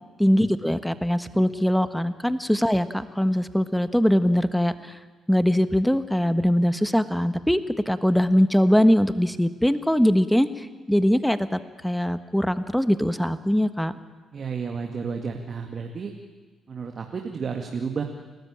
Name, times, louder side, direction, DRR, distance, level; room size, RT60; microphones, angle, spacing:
voice 1, 0.2-5.0 5.3-13.9, equal, 5° left, 11 dB, 1.4 m, -22 dB
voice 2, 14.3-16.1 16.7-18.0, right 5 dB, 50° right, 3 dB, 2.1 m, -31 dB
29.5 x 13.5 x 8.8 m, 1.3 s
hypercardioid pair, 45°, 0 cm